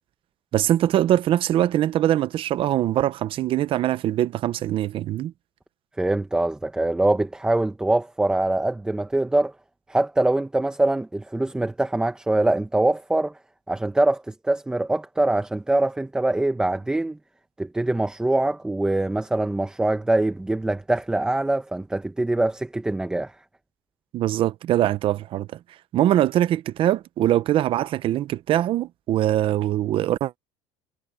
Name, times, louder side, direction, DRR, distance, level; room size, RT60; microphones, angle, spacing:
voice 1, 0.5-5.3 24.1-25.5 25.9-30.4, right 12 dB, 40° right, 0.7 m, -22 dB
voice 2, 6.0-9.5 9.9-13.4 13.7-17.2 17.6-23.3, right 2 dB, 5° right, 0.9 m, -23 dB
cardioid pair, 155°, 14 cm